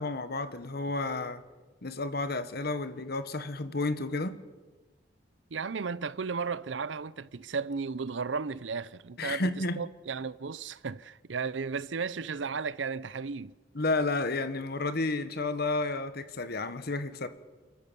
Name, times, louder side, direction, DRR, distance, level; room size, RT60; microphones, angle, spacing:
voice 1, 0.0-1.4 1.8-4.4 9.2-9.8 13.7-17.3, left 2 dB, 60° left, 1.5 m, -31 dB
voice 2, 5.5-13.5, right 5 dB, 85° right, 0.6 m, -34 dB
29.0 x 13.5 x 6.9 m
head